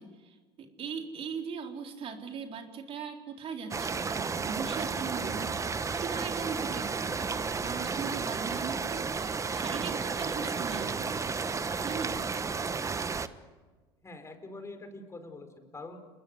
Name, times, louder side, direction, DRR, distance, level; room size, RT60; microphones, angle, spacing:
voice 1, 0.0-7.4 7.6-11.1 11.8-12.3, right 6 dB, 45° right, 4 dB, 3.9 m, -39 dB
sound 1, 3.7-13.3, right 5 dB, 25° right, 1.3 m, -32 dB
voice 2, 14.0-16.0, left 2 dB, 20° left, 7 dB, 5.0 m, -44 dB
29.0 x 20.0 x 8.2 m, 1.3 s
hypercardioid pair, 80°, 14 cm